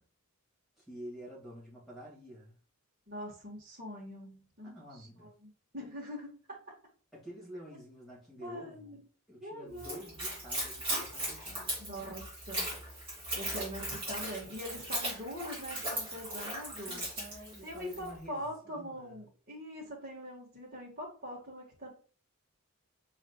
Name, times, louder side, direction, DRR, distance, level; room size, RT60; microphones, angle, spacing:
voice 1, 0.8-2.6 4.6-5.3 5.8-5.9 7.1-9.0 9.3-11.8 16.8-19.3, equal, ahead, -8 dB, 2.1 m, -49 dB
voice 2, 3.1-6.6 8.4-9.0 9.4-10.1 11.8-12.7 13.3-17.0 17.6-21.9, equal, 40° right, -3 dB, 1.5 m, -43 dB
Splash splatter / Trickle dribble, 9.8-18.1, right 1 dB, 25° right, 2.2 m, -38 dB
4.8 x 4.3 x 2.2 m, 0.39 s
head